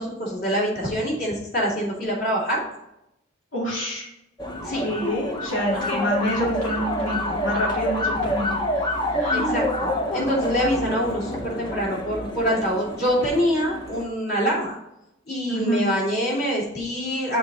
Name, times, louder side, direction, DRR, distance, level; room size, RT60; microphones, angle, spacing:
voice 1, 0.0-2.6 4.6-4.8 5.7-6.0 8.1-8.3 9.3-14.7 15.3-17.4, equal, 50° left, -4 dB, 2.8 m, -25 dB
voice 2, 3.5-4.1 4.7-8.5 9.2-9.6 15.5-15.8, equal, 75° left, -5 dB, 2.4 m, -27 dB
sound 1, 4.4-14.0, left 1 dB, 20° left, 0.8 m, -27 dB
7.0 x 4.0 x 6.1 m, 0.84 s
head